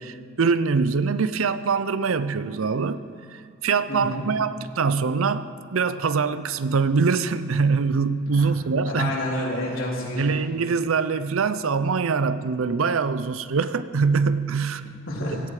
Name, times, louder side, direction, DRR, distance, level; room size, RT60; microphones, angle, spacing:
voice 1, 0.0-3.0 3.3-9.1 10.2-14.8, right 5 dB, 70° right, 13 dB, 0.6 m, -23 dB
voice 2, 3.9-4.2 8.4-8.5 8.8-10.3 15.1-15.4, left 1 dB, 65° left, -4 dB, 3.8 m, -29 dB
16.5 x 14.0 x 4.9 m, 2.6 s
head